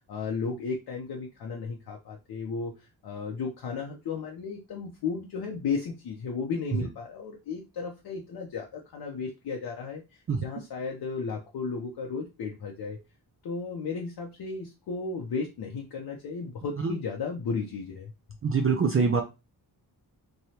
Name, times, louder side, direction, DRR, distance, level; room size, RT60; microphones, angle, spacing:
voice 1, 0.1-13.0 13.4-18.1, left 5 dB, 70° left, 0 dB, 0.7 m, -34 dB
voice 2, 18.4-19.2, right 5 dB, 35° right, 2 dB, 0.4 m, -24 dB
3.1 x 2.3 x 2.7 m, 0.26 s
cardioid pair, 85°, 41 cm